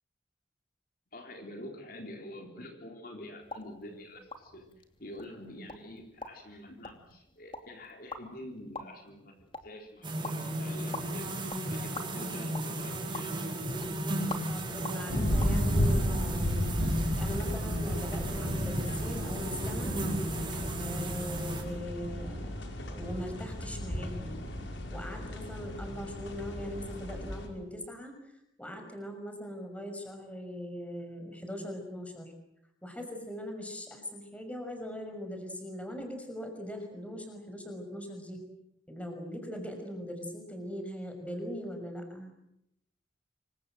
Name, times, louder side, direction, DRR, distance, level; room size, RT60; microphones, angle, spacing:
voice 1, 1.1-4.7 5.0-11.4 11.7-13.6, left 1 dB, 50° left, 3 dB, 3.8 m, -46 dB
sound 1, 3.4-15.6, left 2 dB, 25° left, 2.8 m, -47 dB
sound 2, 10.0-21.6, right 1 dB, 25° right, 7.2 m, -35 dB
voice 2, 14.5-16.8 17.2-20.0 20.8-22.5 22.9-24.4 24.9-28.1 28.6-32.3 32.8-38.4 38.9-42.3, equal, 5° left, 4 dB, 6.0 m, -40 dB
sound 3, 15.1-27.5, equal, 80° left, 5.5 m, -33 dB
27.0 x 24.5 x 7.8 m, 0.80 s
head